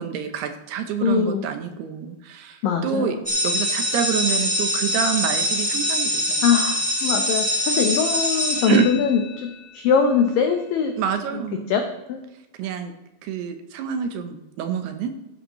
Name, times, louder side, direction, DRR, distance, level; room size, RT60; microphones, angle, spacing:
voice 1, 0.0-3.2 3.4-6.6 8.6-8.9 11.0-11.7 12.6-12.9 13.2-15.1, right 7 dB, 75° right, 7 dB, 2.6 m, -27 dB
voice 2, 1.0-1.4 2.6-3.2 6.4-10.9 11.7-11.8 12.1-12.2, left 6 dB, 90° left, 5 dB, 1.9 m, -22 dB
sound 1, 3.2-9.4, equal, 10° right, 0.4 m, -24 dB
14.0 x 11.0 x 3.1 m, 0.97 s
omnidirectional pair, 5.2 m